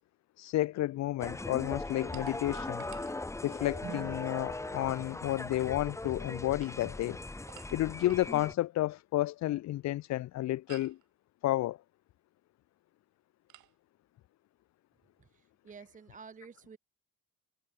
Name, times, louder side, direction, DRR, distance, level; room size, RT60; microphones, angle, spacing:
voice 1, 0.4-2.9 3.4-7.2 7.7-11.0 11.4-11.8, left 15 dB, 65° left, 0.5 m, -31 dB
sound 1, 1.2-8.5, left 2 dB, 10° left, 0.8 m, -39 dB
sound 2, 2.1-3.9 6.4-8.3 10.7-11.1 13.5-13.8, right 16 dB, 80° right, 0.9 m, -55 dB
sound 3, 3.8-6.0, right 10 dB, 55° right, 1.6 m, -50 dB
voice 2, 15.2-16.8, right 5 dB, 25° right, 0.6 m, -51 dB
cardioid pair, 90°, 30 cm